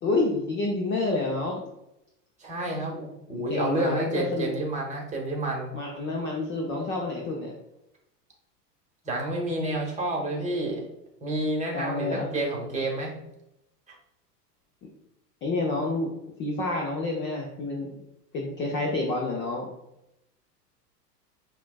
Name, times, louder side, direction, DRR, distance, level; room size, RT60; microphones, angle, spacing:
voice 1, 0.0-1.6 3.3-4.5 5.7-7.5 11.6-12.3 15.4-16.1 16.4-18.0 18.3-19.7, left 2 dB, 25° left, -2 dB, 0.6 m, -29 dB
voice 2, 2.4-5.7 9.0-10.9 11.2-13.1, right 1 dB, 15° right, -1 dB, 1.1 m, -29 dB
5.7 x 2.4 x 2.3 m, 0.87 s
hypercardioid pair, 100°, 49 cm